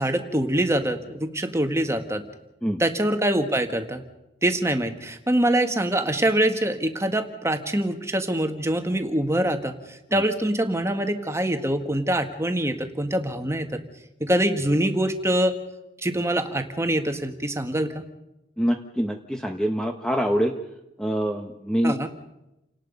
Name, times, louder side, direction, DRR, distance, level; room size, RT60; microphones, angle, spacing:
voice 1, 0.0-2.2 2.8-4.0 4.4-9.7 10.1-13.8 14.2-15.6 16.0-17.9 21.8-22.1, right 1 dB, 15° right, 6 dB, 1.7 m, -24 dB
voice 2, 18.6-20.6 21.0-22.0, equal, 5° left, 4 dB, 1.1 m, -25 dB
29.5 x 18.5 x 5.4 m, 0.91 s
head